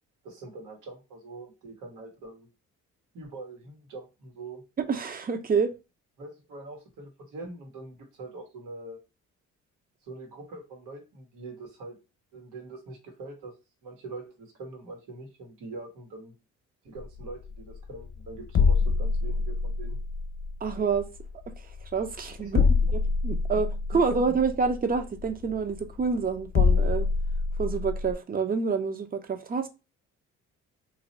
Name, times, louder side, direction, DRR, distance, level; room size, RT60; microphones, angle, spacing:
voice 1, 0.2-2.5 3.1-4.6 6.2-9.0 10.0-12.0 12.3-13.5 13.8-16.3 16.8-20.0 22.4-22.7 23.5-23.6 23.9-24.0, right 2 dB, 85° right, 1.4 m, -43 dB
voice 2, 4.9-5.7 20.6-21.1 21.9-22.6 23.2-27.1 27.6-29.7, right 5 dB, 30° right, 0.7 m, -27 dB
sound 1, 17.0-28.1, left 5 dB, 45° left, 0.9 m, -27 dB
2.9 x 2.7 x 4.1 m
cardioid pair, 90°, 30 cm